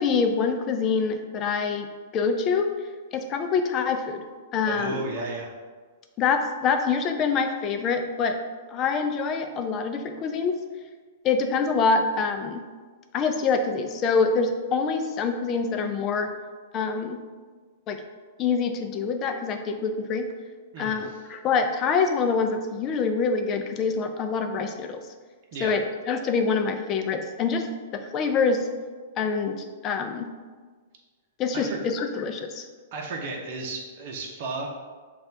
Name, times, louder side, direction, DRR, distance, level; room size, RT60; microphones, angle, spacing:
voice 1, 0.0-1.9 2.1-2.7 3.1-4.2 4.5-5.0 6.2-8.4 8.7-10.6 11.2-12.6 13.1-16.3 16.7-17.2 17.9-18.0 18.4-20.2 20.8-25.0 25.6-27.7 27.9-28.7 29.2-30.3 31.4-32.6, left 5 dB, 30° left, 6 dB, 0.4 m, -25 dB
voice 2, 4.7-5.5 20.7-21.2 25.5-25.8 31.5-31.8 32.9-34.7, right 3 dB, 55° right, -1 dB, 0.8 m, -34 dB
7.2 x 2.4 x 2.7 m, 1.5 s
hypercardioid pair, 130°, 0 cm